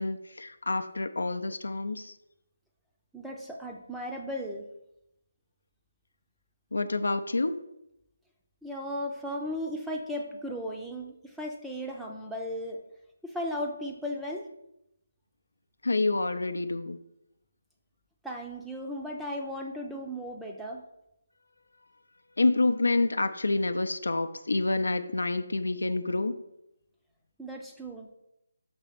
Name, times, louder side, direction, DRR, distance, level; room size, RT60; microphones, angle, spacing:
voice 1, 0.0-2.2 6.7-7.6 15.8-17.0 22.4-26.3, left 2 dB, 75° left, 9 dB, 0.5 m, -28 dB
voice 2, 3.1-4.6 8.6-12.8 13.2-14.5 18.2-20.8 27.4-28.1, equal, ahead, -1 dB, 0.5 m, -36 dB
6.1 x 3.3 x 5.8 m, 0.84 s
figure-of-eight pair, 155°, 0 cm